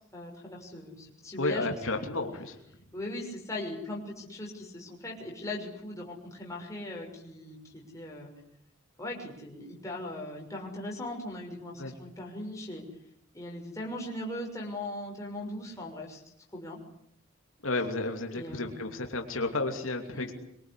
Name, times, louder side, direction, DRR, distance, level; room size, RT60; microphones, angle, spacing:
voice 1, 0.0-2.1 2.9-8.3 9.0-12.8 13.3-16.2 16.5-16.8 18.3-18.8 19.5-19.6 20.1-20.3, left 1 dB, 15° left, -1 dB, 6.4 m, -39 dB
voice 2, 1.4-2.6 11.8-11.9 17.6-20.3, left 2 dB, 70° left, 3 dB, 2.9 m, -32 dB
25.5 x 23.0 x 10.0 m, 0.73 s
head